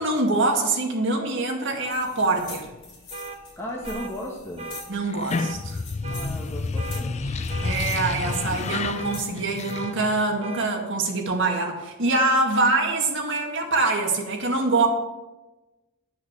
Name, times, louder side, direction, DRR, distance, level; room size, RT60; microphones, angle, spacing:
voice 1, 0.0-2.7 4.9-5.8 7.6-14.9, right 3 dB, 55° right, 2 dB, 2.0 m, -24 dB
sound 1, 1.9-9.7, left 3 dB, 55° left, 4.0 m, -44 dB
sound 2, 3.1-3.4 3.8-4.1 4.6-4.8 5.3-5.6 6.0-6.3 6.8-7.0 7.5-7.8 8.2-8.5 8.9-9.2 9.7-9.9 10.4-10.7, right 4 dB, 30° right, 1.0 m, -37 dB
voice 2, 3.5-4.7 6.1-7.7, left 1 dB, 10° left, -3 dB, 1.3 m, -36 dB
sound 3, 5.1-10.4, left 3 dB, 30° left, 0.3 m, -30 dB
11.5 x 6.5 x 7.3 m, 1.1 s
head